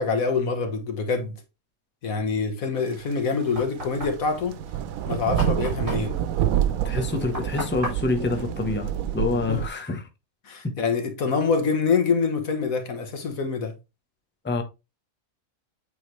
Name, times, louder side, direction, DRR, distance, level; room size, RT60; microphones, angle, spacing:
voice 1, 0.0-1.4 2.0-4.6 5.1-6.2 9.5-9.6 10.5-13.7, left 5 dB, 85° left, 1.8 m, -25 dB
sound 1, 3.3-3.5 3.8-9.7, right 10 dB, 90° right, 1.1 m, -27 dB
Knock, 3.6-9.5, equal, 40° right, 3.7 m, -37 dB
voice 2, 6.8-10.0 10.6-10.8 14.4-14.6, left 3 dB, 10° left, 0.9 m, -27 dB
8.5 x 3.8 x 3.2 m
omnidirectional pair, 1.4 m